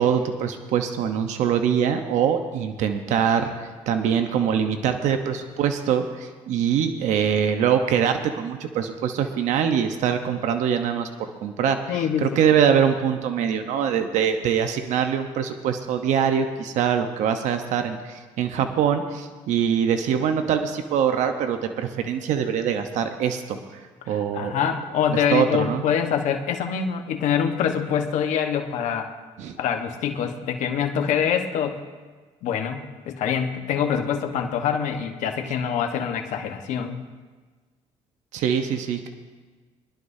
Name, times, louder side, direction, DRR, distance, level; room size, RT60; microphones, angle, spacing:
voice 1, 0.0-23.8 24.1-24.5 25.3-25.8 29.4-29.6 35.4-35.5 38.3-39.1, right 8 dB, 75° right, 7 dB, 1.0 m, -23 dB
voice 2, 11.9-12.5 24.0-29.1 29.6-31.8 32.4-37.0, left 8 dB, 75° left, 4 dB, 1.3 m, -25 dB
22.5 x 11.5 x 2.7 m, 1.4 s
cardioid pair, 85°, 13 cm